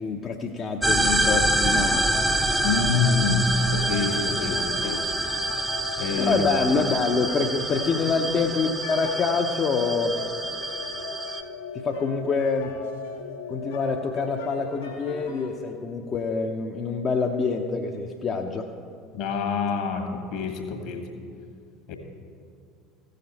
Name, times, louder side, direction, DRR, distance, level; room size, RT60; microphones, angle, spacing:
voice 1, 0.0-2.1 6.2-10.2 11.7-12.7 13.5-18.7, left 4 dB, 35° left, 1 dB, 0.7 m, -26 dB
sound 1, 0.8-11.4, right 2 dB, 10° right, 0.7 m, -26 dB
sound 2, 1.2-15.5, left 4 dB, 75° left, 1.1 m, -38 dB
voice 2, 2.6-5.0 6.0-6.3 19.1-21.0 21.9-22.0, left 4 dB, 55° left, 4 dB, 1.5 m, -26 dB
15.5 x 6.7 x 4.1 m, 2.3 s
figure-of-eight pair, 70°, 0 cm